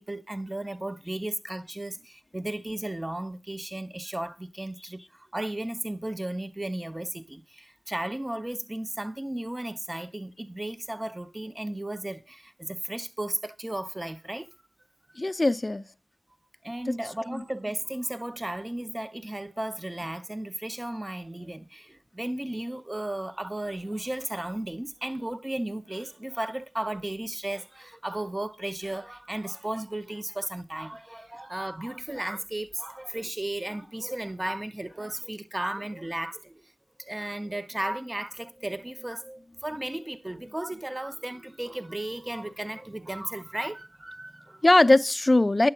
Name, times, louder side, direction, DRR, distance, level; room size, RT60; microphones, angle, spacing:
voice 1, 0.0-14.5 16.6-36.7 37.0-44.7, right 1 dB, 25° right, 0.7 m, -35 dB
voice 2, 15.2-15.8 16.9-17.0 17.3-17.4 44.6-45.7, left 2 dB, 30° left, 0.5 m, -20 dB
8.9 x 6.8 x 5.7 m
wide cardioid pair, 55°, 0 cm